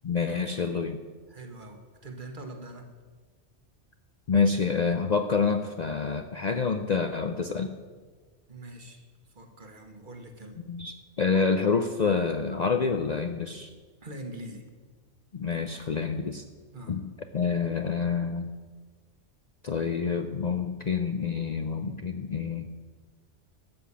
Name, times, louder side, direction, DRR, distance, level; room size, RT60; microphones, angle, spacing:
voice 1, 0.0-1.0 4.3-7.7 10.7-13.7 15.3-16.4 16.9-17.1 17.3-18.5 19.6-22.7, left 5 dB, 50° left, 7 dB, 0.6 m, -27 dB
voice 2, 1.3-2.9 8.5-10.6 14.0-14.6 16.7-17.0, right 1 dB, 45° right, 5 dB, 1.4 m, -43 dB
13.0 x 5.9 x 8.4 m, 1.4 s
omnidirectional pair, 1.2 m